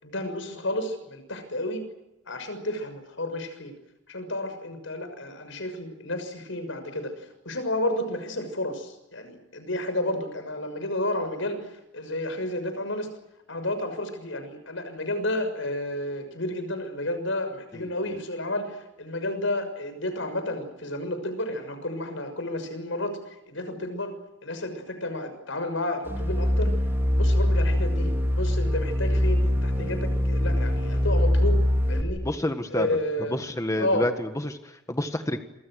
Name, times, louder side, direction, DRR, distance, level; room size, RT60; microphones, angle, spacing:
voice 1, 0.0-1.8 2.3-3.7 4.1-13.1 13.5-23.2 23.5-24.1 24.4-26.7 27.2-32.2 32.7-33.4 33.8-34.1, left 1 dB, 90° left, 9 dB, 6.4 m, -31 dB
sound 1, 26.1-32.0, left 1 dB, 15° right, 4.0 m, -23 dB
voice 2, 32.2-32.9 33.3-35.4, left 1 dB, 15° left, 7 dB, 1.7 m, -29 dB
27.5 x 25.5 x 6.5 m, 0.89 s
head